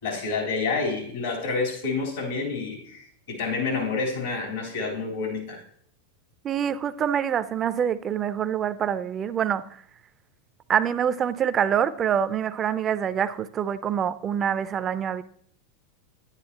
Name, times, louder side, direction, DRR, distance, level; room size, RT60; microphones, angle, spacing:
voice 1, 0.0-5.6, left 4 dB, 80° left, 3.4 m, -28 dB
voice 2, 6.4-9.6 10.7-15.2, right 8 dB, 30° right, 0.4 m, -25 dB
10.0 x 9.7 x 2.8 m
hypercardioid pair, 105°, 0 cm